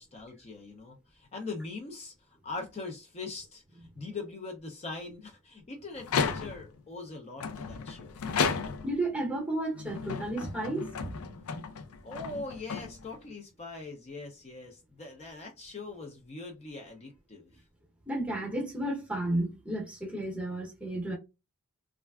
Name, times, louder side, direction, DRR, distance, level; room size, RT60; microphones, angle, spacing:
voice 1, 0.0-8.2 12.0-17.5, left 3 dB, 30° left, 0.5 m, -42 dB
sound 1, 6.0-6.8 7.4-9.1 9.7-13.3, left 5 dB, 85° left, 0.5 m, -34 dB
voice 2, 8.8-11.5 18.1-21.2, right 1 dB, 5° right, 0.8 m, -33 dB
3.2 x 2.4 x 2.3 m
head